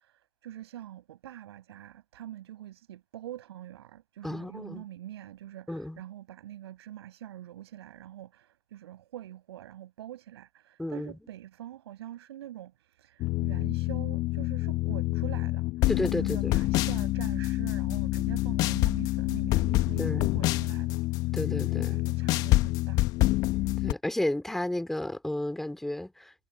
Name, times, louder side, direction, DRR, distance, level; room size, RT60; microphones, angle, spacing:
voice 1, 0.4-5.7 6.0-12.7 13.0-15.6 16.2-21.0 21.9-23.1, right 12 dB, 40° right, 7.9 m, -44 dB
voice 2, 4.2-4.9 5.7-6.0 10.8-11.3 15.9-16.6 20.0-20.3 21.3-22.0 23.8-26.3, left 1 dB, ahead, 2.8 m, -32 dB
sound 1, 13.2-23.9, left 19 dB, 20° left, 1.0 m, -27 dB
figure-of-eight pair, 140°, 20 cm